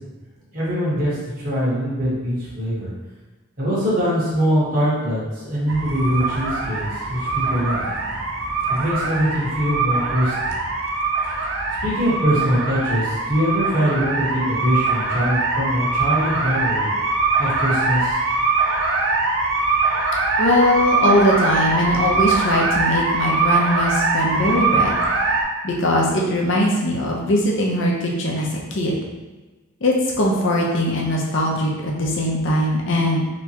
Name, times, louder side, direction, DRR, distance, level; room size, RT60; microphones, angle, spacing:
voice 1, 0.5-1.1 1.4-2.9 3.6-7.8 8.7-10.6 11.8-16.9 17.4-18.2, equal, 45° right, -8 dB, 1.2 m, -22 dB
sound 1, 5.7-25.4, right 3 dB, 75° right, 0.5 m, -22 dB
voice 2, 20.4-25.0 25.6-29.0 29.8-33.2, left 1 dB, 65° left, -1 dB, 0.7 m, -20 dB
3.3 x 2.9 x 2.9 m, 1.2 s
head